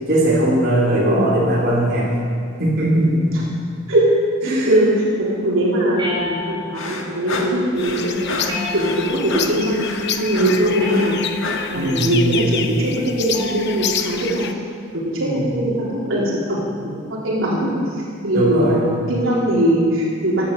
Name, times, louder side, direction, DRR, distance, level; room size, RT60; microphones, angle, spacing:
voice 1, 0.1-2.1 2.6-3.5 4.4-4.8 11.7-12.5 15.2-15.5 18.3-18.9, right 1 dB, 50° right, -6 dB, 3.7 m, -19 dB
voice 2, 4.4-8.4 8.7-11.1 11.7-14.5 14.9-20.5, right 1 dB, 80° right, -5 dB, 3.7 m, -21 dB
sound 1, 6.0-6.8 8.4-9.3 10.8-11.5 13.3-13.7, left 2 dB, 25° right, 5.0 m, -28 dB
sound 2, 6.7-11.8, left 3 dB, 85° left, 1.6 m, -30 dB
sound 3, 7.8-14.5, left 8 dB, 55° left, 0.8 m, -28 dB
16.0 x 10.5 x 6.6 m, 2.2 s
head